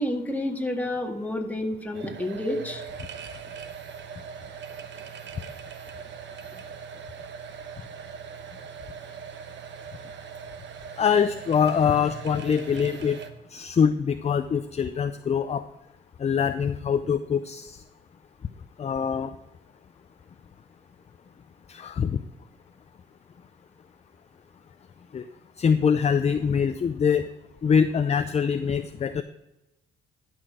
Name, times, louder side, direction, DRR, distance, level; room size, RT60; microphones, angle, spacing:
voice 1, 0.0-2.8, left 1 dB, 10° left, 2 dB, 1.7 m, -29 dB
sound 1, 1.9-13.3, right 7 dB, 65° right, 1.0 m, -41 dB
voice 2, 11.0-13.2 13.5-15.6 16.2-17.8 18.8-19.3 21.7-22.1 25.1-25.2 25.6-27.3 27.6-29.2, left 7 dB, 35° left, 9 dB, 0.5 m, -24 dB
11.0 x 6.1 x 4.8 m, 0.93 s
cardioid pair, 90°, 20 cm